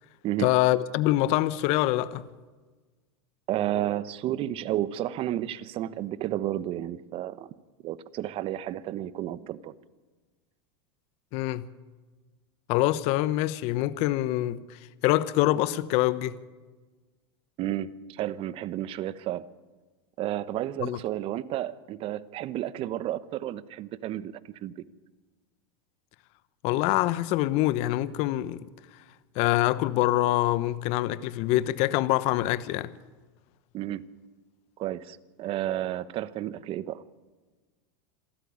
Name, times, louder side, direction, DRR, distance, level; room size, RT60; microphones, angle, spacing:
voice 1, 0.4-2.3 11.3-11.7 12.7-16.4 20.8-21.0 26.6-28.6 29.3-32.9, left 16 dB, 55° left, 1.0 m, -25 dB
voice 2, 3.5-7.5 7.8-9.7 17.6-19.5 20.2-24.3 24.6-24.7 33.7-34.0 34.8-37.0, right 13 dB, 45° right, 1.2 m, -31 dB
26.5 x 13.5 x 9.7 m
hypercardioid pair, 110°, 13 cm